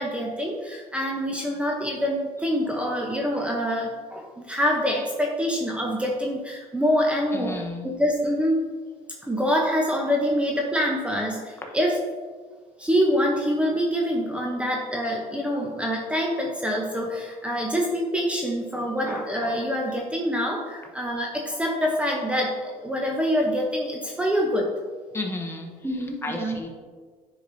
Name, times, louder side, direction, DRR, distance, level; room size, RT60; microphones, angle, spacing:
voice 1, 0.0-8.6 9.2-12.0 12.8-24.7 25.8-26.6, equal, 10° right, -1 dB, 0.7 m, -25 dB
voice 2, 7.3-7.8 25.1-25.7 26.2-26.7, left 2 dB, 15° left, 2 dB, 1.0 m, -32 dB
9.9 x 4.8 x 2.7 m, 1.5 s
cardioid pair, 120°, 15 cm